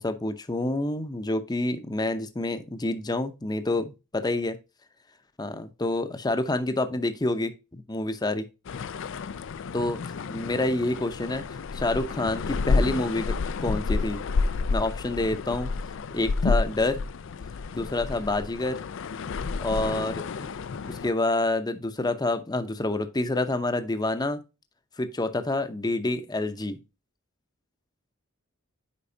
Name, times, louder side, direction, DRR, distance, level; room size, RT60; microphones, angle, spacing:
voice 1, 0.0-4.6 5.4-8.4 9.7-10.0 10.3-11.4 11.7-13.3 13.6-14.2 14.7-15.7 16.1-17.0 17.7-18.8 19.6-20.5 20.9-24.4 25.0-26.8, left 2 dB, 20° left, 0.7 m, -28 dB
sound 1, 8.6-21.1, left 4 dB, 65° left, 0.4 m, -30 dB
8.4 x 5.3 x 2.7 m
head